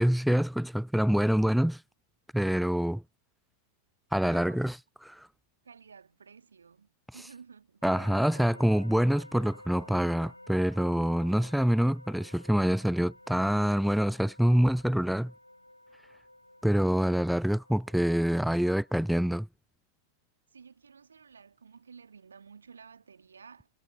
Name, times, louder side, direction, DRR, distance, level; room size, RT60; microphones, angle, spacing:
voice 1, 0.0-1.8 2.3-3.0 4.1-4.8 5.2-5.3 7.8-15.3 16.6-19.5, equal, ahead, 0.4 m, -26 dB
voice 2, 4.2-4.7 5.6-7.8 20.5-23.7, right 6 dB, 70° right, 2.0 m, -52 dB
sound 1, 7.8-19.3, left 1 dB, 85° left, 5.9 m, -52 dB
figure-of-eight pair, 90°, 0 cm